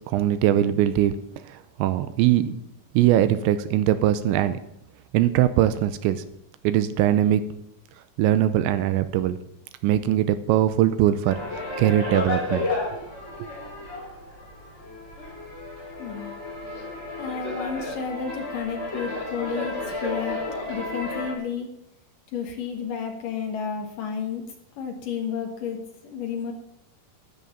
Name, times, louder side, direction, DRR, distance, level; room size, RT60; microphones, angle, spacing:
voice 1, 0.1-1.1 1.5-2.5 2.9-4.6 5.1-6.2 6.6-7.4 8.2-9.4 9.8-13.0 13.4-13.5, right 12 dB, 80° right, 12 dB, 2.7 m, -21 dB
sound 1, 11.3-21.3, left 2 dB, 15° left, 3.8 m, -32 dB
voice 2, 16.0-16.3 17.2-20.4 20.7-21.7 22.3-24.4 24.8-26.5, left 6 dB, 75° left, 4 dB, 2.0 m, -31 dB
12.5 x 10.0 x 7.2 m, 0.79 s
omnidirectional pair, 5.6 m